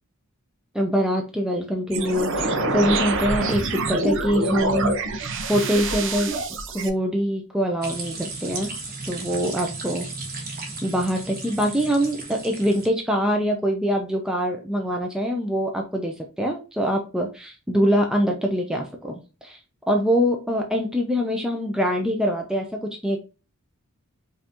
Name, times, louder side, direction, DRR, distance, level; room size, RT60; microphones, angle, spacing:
voice 1, 0.7-6.3 6.7-8.7 9.1-10.1 10.3-19.6 19.9-23.2, equal, 5° right, 1 dB, 0.5 m, -24 dB
sound 1, 1.9-6.9, right 2 dB, 60° right, 0.7 m, -25 dB
sound 2, 7.8-12.9, right 3 dB, 45° right, 1.4 m, -35 dB
5.4 x 2.6 x 2.9 m, 0.32 s
head